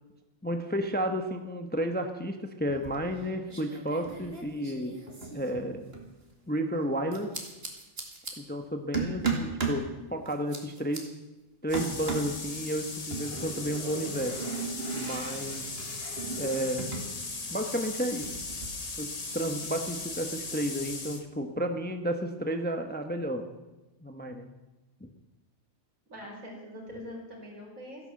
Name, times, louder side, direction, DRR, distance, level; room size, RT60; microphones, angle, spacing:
voice 1, 0.4-5.0 5.3-5.9 6.5-7.3 8.4-11.1 11.6-14.4 14.9-15.8 16.4-16.9 17.5-18.3 19.0-23.5 24.0-24.5 25.0-25.1, equal, 10° left, 6 dB, 0.9 m, -32 dB
sound 1, 2.7-3.2 3.5-6.1 7.1-8.3 8.9-9.8 10.3-11.0 11.7-12.4 13.1-17.1 17.4-18.7, right 4 dB, 45° right, 2.5 m, -36 dB
sound 2, 11.7-21.2, left 3 dB, 30° left, 1.3 m, -38 dB
voice 2, 26.1-28.1, equal, 75° right, -2 dB, 5.5 m, -43 dB
14.0 x 11.0 x 7.6 m, 1.1 s
omnidirectional pair, 1.5 m